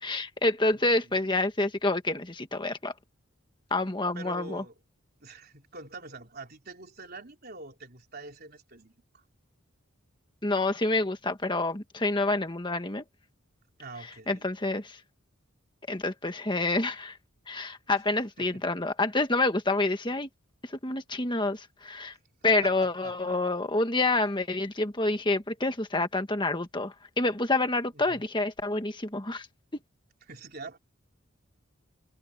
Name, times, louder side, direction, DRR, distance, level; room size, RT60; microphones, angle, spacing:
voice 1, 0.0-2.9 3.7-4.6 10.4-13.0 14.3-15.0 15.9-17.2 17.5-20.3 20.6-22.1 22.4-29.5, left 2 dB, 20° left, 1.6 m, -28 dB
voice 2, 0.7-1.3 4.1-4.7 5.2-9.2 13.8-14.5 18.4-18.7 22.4-23.4 27.9-28.3 30.3-30.8, right 3 dB, 45° right, 4.0 m, -45 dB
head